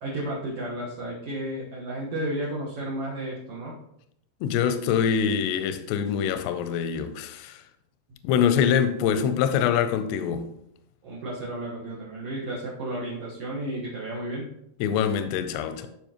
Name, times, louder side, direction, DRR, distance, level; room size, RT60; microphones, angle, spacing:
voice 1, 0.0-3.7 11.0-14.5, right 1 dB, 60° right, 1.6 m, -32 dB
voice 2, 4.4-7.6 8.2-10.5 14.8-15.9, left 8 dB, 85° left, 2.6 m, -24 dB
12.0 x 5.1 x 3.0 m
omnidirectional pair, 4.7 m